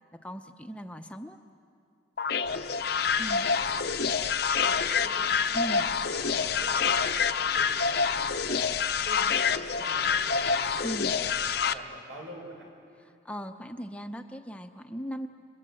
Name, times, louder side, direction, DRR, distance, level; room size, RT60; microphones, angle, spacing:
voice 1, 0.2-1.4 3.2-3.5 5.5-5.9 10.8-11.2 13.0-15.3, equal, 5° left, 6 dB, 0.7 m, -38 dB
sound 1, 2.2-11.7, left 6 dB, 55° left, 0.7 m, -27 dB
voice 2, 2.5-4.1 4.5-5.3 6.1-9.3 9.7-10.9 11.2-12.7, right 1 dB, 80° right, 0 dB, 6.6 m, -46 dB
30.0 x 23.0 x 7.7 m, 2.5 s
head